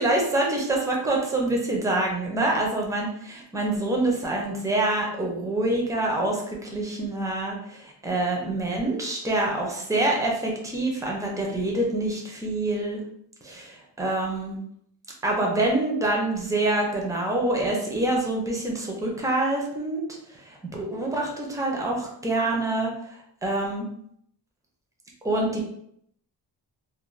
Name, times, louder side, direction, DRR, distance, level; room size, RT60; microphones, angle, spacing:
voice 1, 0.0-13.0 13.4-14.6 15.2-20.0 20.4-22.9 23.4-23.9 25.2-25.6, right 2 dB, 10° right, -1 dB, 0.4 m, -26 dB
2.4 x 2.0 x 3.0 m, 0.71 s
wide cardioid pair, 160°, 41 cm